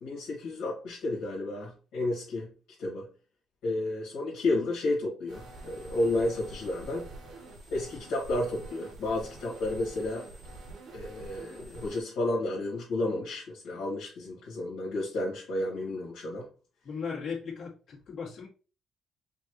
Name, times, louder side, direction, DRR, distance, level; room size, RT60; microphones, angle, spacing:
voice 1, 0.0-2.5 2.8-3.0 3.6-7.1 7.7-10.3 10.9-16.5, left 2 dB, 90° left, -5 dB, 2.2 m, -31 dB
sound 1, 5.3-12.0, right 2 dB, 85° right, 1.7 m, -46 dB
voice 2, 16.8-18.5, left 6 dB, 70° left, -6 dB, 2.4 m, -37 dB
5.9 x 2.7 x 3.2 m, 0.36 s
cardioid pair, 90°, 0 cm